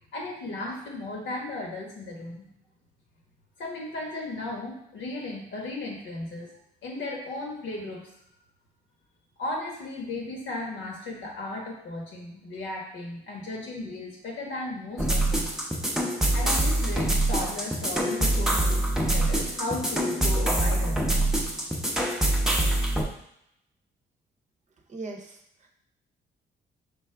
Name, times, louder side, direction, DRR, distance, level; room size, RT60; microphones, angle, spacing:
voice 1, 0.1-2.5 3.6-6.5 6.8-8.1 9.4-15.5 16.3-21.1, left 2 dB, 70° left, -1 dB, 1.3 m, -35 dB
sound 1, 15.0-23.0, right 1 dB, ahead, 0.7 m, -25 dB
voice 2, 24.9-25.7, right 3 dB, 40° right, 2 dB, 0.7 m, -40 dB
5.3 x 2.4 x 3.4 m, 0.76 s
cardioid pair, 90°, 20 cm